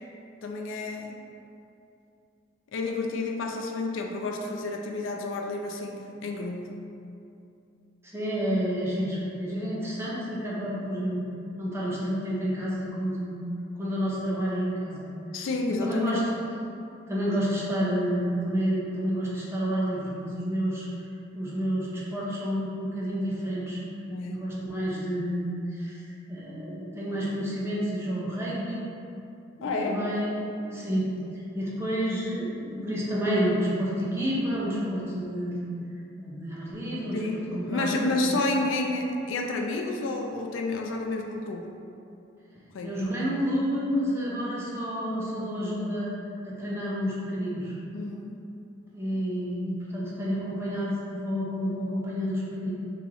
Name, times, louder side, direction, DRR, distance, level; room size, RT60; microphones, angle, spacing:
voice 1, 0.4-1.2 2.7-6.8 15.3-16.3 24.1-24.6 29.6-30.0 37.1-41.7 42.7-43.0 47.9-48.4, left 2 dB, 80° left, 2 dB, 0.4 m, -30 dB
voice 2, 8.0-11.2 11.6-13.4 13.8-15.1 15.8-16.5 17.1-20.9 21.3-23.8 24.3-28.9 29.6-35.7 36.2-37.9 38.3-38.4 42.8-46.1 46.4-47.7 48.9-52.7, equal, 15° right, -7 dB, 0.6 m, -29 dB
3.0 x 2.9 x 3.7 m, 2.7 s
head